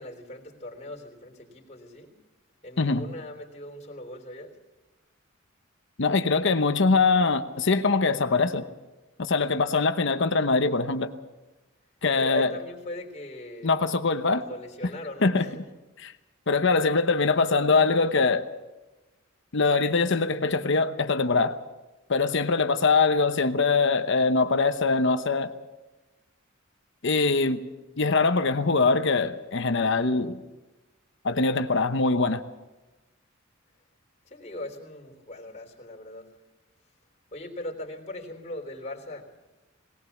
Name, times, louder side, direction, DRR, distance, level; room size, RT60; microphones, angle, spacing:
voice 1, 0.0-2.1 2.6-4.5 12.1-13.7 14.4-15.6 34.3-36.3 37.3-39.3, left 1 dB, 35° left, 0 dB, 3.4 m, -39 dB
voice 2, 6.0-8.6 9.2-11.1 12.0-12.5 13.6-14.5 15.2-15.5 16.0-16.1 16.5-18.5 19.5-21.6 22.1-25.5 27.0-27.6 28.0-30.4 31.2-32.4, left 4 dB, 60° left, 9 dB, 1.0 m, -23 dB
19.5 x 19.0 x 7.2 m, 1.1 s
head